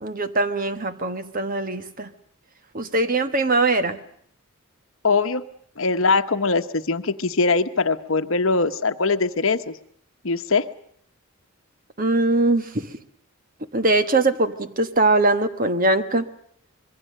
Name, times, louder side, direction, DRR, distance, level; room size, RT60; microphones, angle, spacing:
voice 1, 0.0-2.1 2.7-4.0 12.0-12.9 13.7-16.2, right 2 dB, 40° right, 10 dB, 1.4 m, -21 dB
voice 2, 5.0-5.4 5.8-9.7 10.2-10.6, left 4 dB, 65° left, 10 dB, 1.1 m, -21 dB
26.0 x 22.0 x 6.6 m, 0.65 s
head